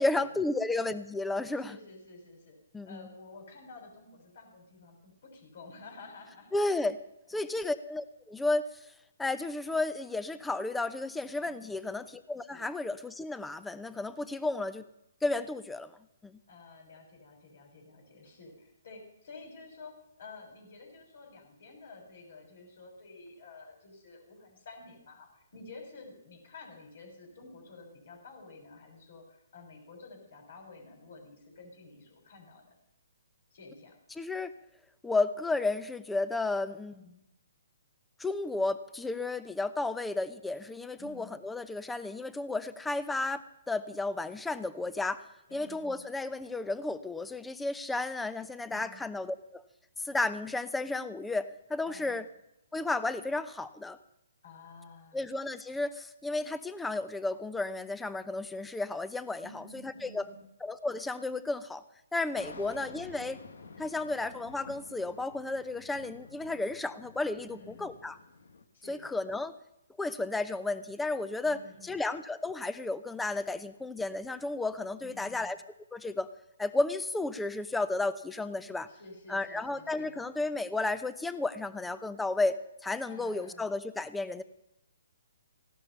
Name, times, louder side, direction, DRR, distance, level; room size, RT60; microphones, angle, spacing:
voice 1, 0.0-1.8 2.7-3.1 6.5-7.0 7.3-8.7 9.2-14.9 15.2-15.9 16.2-16.4 34.2-34.5 35.0-37.0 38.2-45.2 45.5-49.6 50.0-52.2 52.7-54.0 55.1-60.2 60.6-61.8 62.1-63.4 63.8-67.5 67.8-68.2 68.9-69.5 70.0-71.6 71.8-75.6 75.9-76.3 76.6-78.9 79.3-82.6 82.8-84.4, left 2 dB, 5° left, 14 dB, 0.8 m, -33 dB
voice 2, 1.5-2.6 2.9-6.5 7.3-7.5 11.4-11.8 12.5-12.7 16.5-32.8 33.5-34.0 36.9-37.2 41.0-41.4 45.5-46.0 48.7-49.0 51.8-52.2 54.4-55.2 59.4-60.5 62.4-62.9 67.4-67.9 68.7-69.1 71.4-72.0 75.0-75.5 78.9-80.2 83.0-83.7, left 3 dB, 60° left, 3 dB, 6.5 m, -51 dB
sound 1, 62.4-68.6, left 4 dB, 75° left, 1.9 m, -50 dB
16.5 x 12.0 x 5.6 m, 0.84 s
hypercardioid pair, 140°, 0 cm